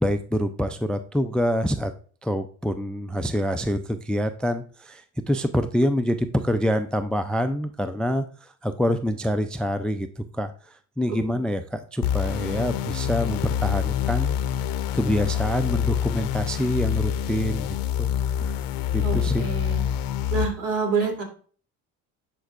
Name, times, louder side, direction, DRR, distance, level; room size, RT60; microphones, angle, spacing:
voice 1, 0.0-1.9 2.2-10.5 11.0-14.4 14.9-18.1 18.4-18.5 18.9-19.4, equal, 5° left, 10 dB, 0.3 m, -26 dB
sound 1, 12.0-20.5, left 9 dB, 80° left, 0.7 m, -26 dB
voice 2, 19.0-19.8 20.3-21.2, right 4 dB, 65° right, 1 dB, 2.9 m, -27 dB
10.5 x 4.6 x 2.5 m, 0.42 s
supercardioid pair, 90°, 34 cm